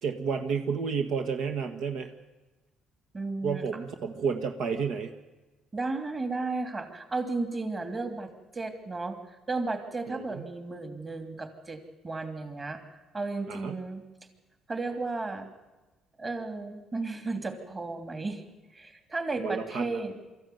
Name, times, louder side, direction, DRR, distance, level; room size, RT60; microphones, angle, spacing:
voice 1, 0.0-2.1 3.4-5.1 10.1-10.5 13.5-13.8 19.4-20.0, right 6 dB, 65° right, 6 dB, 1.5 m, -31 dB
voice 2, 3.1-3.6 5.7-9.2 9.5-11.8 12.0-12.8 13.1-14.0 14.7-15.5 16.2-18.4 18.7-20.2, right 3 dB, 25° right, 6 dB, 2.8 m, -34 dB
24.0 x 14.5 x 9.3 m, 1.1 s
cardioid pair, 130°, 0 cm